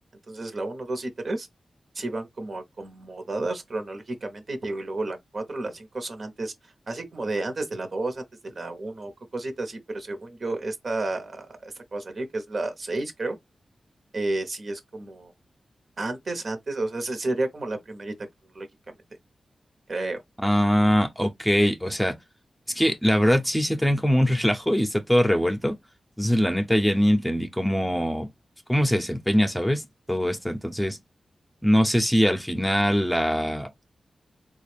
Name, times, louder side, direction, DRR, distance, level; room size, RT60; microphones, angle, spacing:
voice 1, 0.3-1.5 1.9-13.4 14.1-15.3 16.0-18.1 18.5-18.7 19.9-20.2, right 2 dB, 60° right, 1.0 m, -31 dB
voice 2, 20.4-22.1 22.7-25.7 26.2-28.3 28.7-29.8 30.1-31.0 31.6-33.7, equal, 5° left, 0.7 m, -22 dB
3.6 x 2.4 x 3.3 m
cardioid pair, 65°, 0 cm